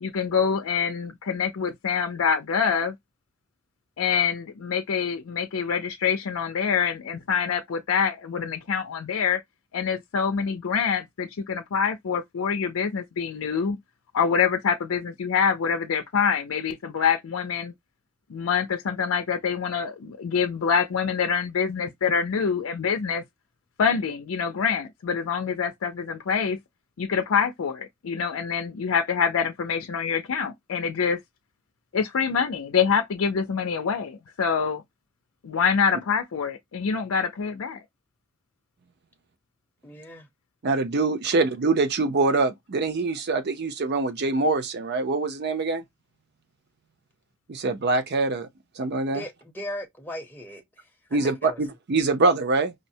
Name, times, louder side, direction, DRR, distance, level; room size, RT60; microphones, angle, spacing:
voice 1, 0.0-2.9 4.0-9.4 9.7-13.8 14.1-17.7 18.3-23.2 23.8-26.6 27.0-31.2 31.9-34.8 35.4-37.8, left 6 dB, 90° left, 0.5 m, -25 dB
voice 2, 39.8-40.3 49.1-50.6 51.2-51.6, equal, 10° left, 0.6 m, -37 dB
voice 3, 40.6-45.8 47.5-48.5 48.8-49.2 51.1-52.7, right 3 dB, 55° right, 0.6 m, -24 dB
5.0 x 2.0 x 2.6 m
head